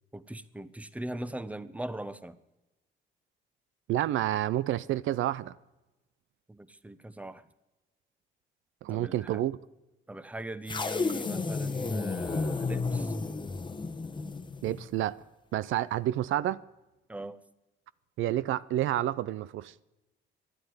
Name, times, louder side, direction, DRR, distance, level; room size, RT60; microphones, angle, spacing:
voice 1, 0.1-2.4 6.5-7.5 8.9-9.4 10.1-13.2 17.1-17.4, right 1 dB, 5° right, 0.8 m, -40 dB
voice 2, 3.9-5.6 8.8-9.6 14.6-15.2 15.5-16.6 18.2-19.7, right 13 dB, 80° right, 0.5 m, -29 dB
sound 1, 10.7-15.0, left 4 dB, 25° left, 1.0 m, -32 dB
12.5 x 11.0 x 9.5 m
cardioid pair, 90°, 20 cm